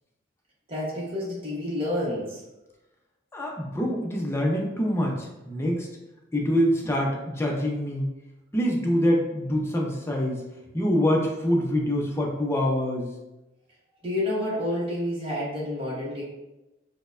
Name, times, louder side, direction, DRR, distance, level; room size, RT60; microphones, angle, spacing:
voice 1, 0.7-2.4 14.0-16.2, left 1 dB, 30° right, -7 dB, 0.9 m, -29 dB
voice 2, 3.3-5.9 6.3-8.1 8.5-10.5 10.7-13.1, equal, 15° left, -1 dB, 0.5 m, -25 dB
4.4 x 2.1 x 2.4 m, 1.0 s
head